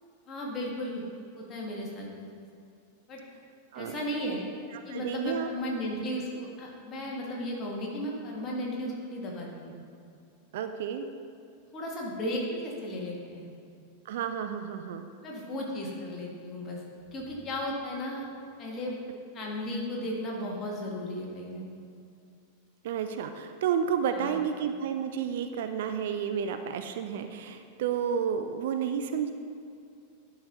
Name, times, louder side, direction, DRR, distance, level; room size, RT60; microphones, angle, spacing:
voice 1, 0.3-1.0 1.3-2.5 3.1-3.2 3.7-4.4 4.9-9.8 11.7-13.5 15.2-16.8 17.1-18.3 18.6-19.0 19.3-21.9 24.1-24.4, left 1 dB, 30° left, -2 dB, 1.9 m, -35 dB
voice 2, 4.7-5.5 10.5-11.1 14.1-15.1 22.8-29.3, right 8 dB, 55° right, 7 dB, 0.5 m, -31 dB
11.0 x 4.7 x 5.4 m, 2.4 s
figure-of-eight pair, 90°, 0 cm